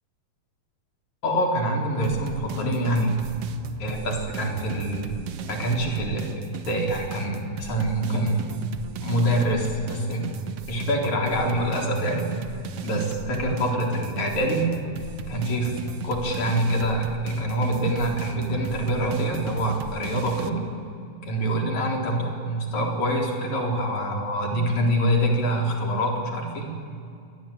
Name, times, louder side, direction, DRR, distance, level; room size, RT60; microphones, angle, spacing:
voice 1, 1.2-3.2 3.8-5.2 5.5-6.3 6.7-8.4 9.0-10.3 10.7-12.4 12.8-14.8 15.3-20.6 21.2-26.7, right 1 dB, 65° left, 0 dB, 5.3 m, -25 dB
sound 1, 2.0-20.5, right 7 dB, 60° right, 1.9 m, -37 dB
28.0 x 23.0 x 8.8 m, 2.4 s
omnidirectional pair, 3.6 m